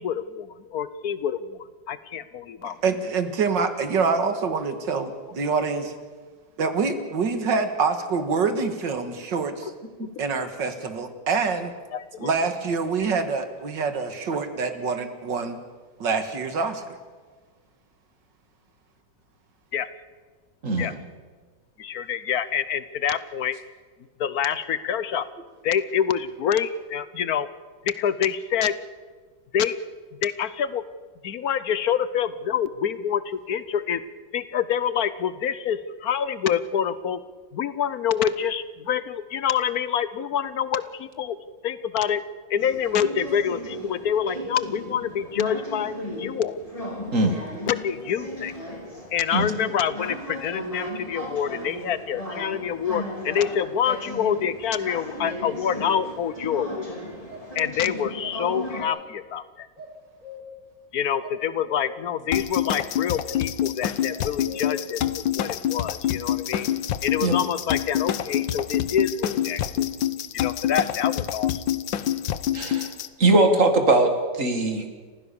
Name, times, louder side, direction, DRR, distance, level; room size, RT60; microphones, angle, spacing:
voice 1, 0.0-1.6 1.9-2.8 11.9-12.3 19.7-19.9 20.8-20.9 21.8-23.6 24.2-25.3 25.6-27.5 27.8-28.7 29.5-29.8 30.2-30.8 31.2-34.0 34.3-37.2 37.5-41.4 41.6-42.2 42.5-46.6 47.7-48.5 49.1-57.0 57.5-59.7 60.9-66.7 67.0-69.9 70.3-71.5, left 8 dB, 60° left, 15 dB, 1.2 m, -26 dB
voice 2, 2.6-5.9 6.6-9.7 10.2-11.7 12.2-15.6 16.0-17.0, right 4 dB, 75° right, 8 dB, 2.4 m, -26 dB
voice 3, 20.6-21.0 47.1-47.4 49.3-49.5 67.2-67.4 72.5-72.9 73.2-75.0, right 2 dB, 45° right, 6 dB, 2.4 m, -21 dB
sound 1, 42.6-58.8, left 1 dB, 20° left, 4.3 m, -36 dB
sound 2, 57.3-57.4 58.2-59.1 59.8-60.7 61.2-62.2 62.6-63.6 64.0-65.0, left 3 dB, 20° right, 4.0 m, -42 dB
sound 3, 62.3-73.1, left 11 dB, 90° left, 1.5 m, -26 dB
29.5 x 15.5 x 7.0 m, 1.4 s
omnidirectional pair, 2.0 m